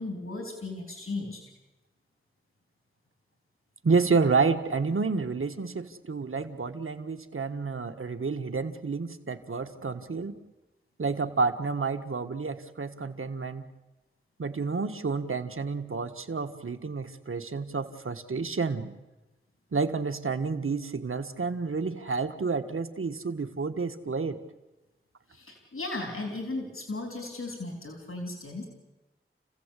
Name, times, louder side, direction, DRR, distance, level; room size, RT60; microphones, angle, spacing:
voice 1, 0.0-1.4 25.3-28.7, left 2 dB, 80° left, 3 dB, 3.6 m, -36 dB
voice 2, 3.8-10.4 11.0-13.6 14.4-19.0 19.7-24.4, right 4 dB, 75° right, 8 dB, 1.6 m, -29 dB
30.0 x 16.0 x 8.4 m, 1.1 s
wide cardioid pair, 50°, 21 cm